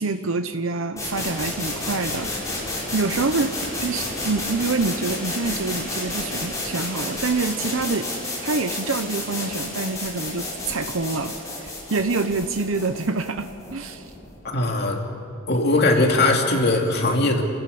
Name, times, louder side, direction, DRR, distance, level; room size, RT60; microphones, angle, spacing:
voice 1, 0.0-8.1 8.4-14.1, right 3 dB, 90° right, 8 dB, 0.9 m, -26 dB
sound 1, 1.0-14.7, left 2 dB, 15° left, 6.6 m, -31 dB
voice 2, 14.5-15.0 15.5-17.4, left 2 dB, 55° left, 2 dB, 2.7 m, -20 dB
28.5 x 15.0 x 8.6 m, 2.8 s
head